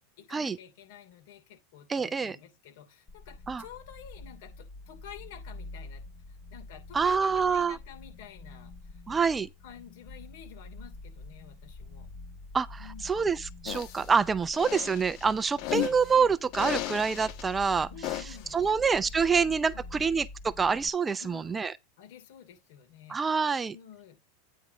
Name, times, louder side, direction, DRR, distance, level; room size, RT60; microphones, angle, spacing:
voice 1, 0.2-9.0 9.6-12.1 12.8-13.2 15.7-16.0 17.9-20.1 21.2-21.6 22.0-23.4 23.7-24.2, left 9 dB, 70° left, 2.8 m, -50 dB
voice 2, 1.9-2.4 3.5-3.6 6.9-7.8 9.1-9.5 12.5-17.9 18.5-21.7 23.1-23.7, right 5 dB, 15° right, 0.4 m, -26 dB
sound 1, 3.1-20.9, left 2 dB, 30° left, 0.9 m, -47 dB
sound 2, 13.7-14.1 14.5-16.1 16.5-17.4 18.0-18.5, left 15 dB, 55° left, 1.0 m, -34 dB
9.5 x 3.5 x 6.0 m
supercardioid pair, 120°, 0 cm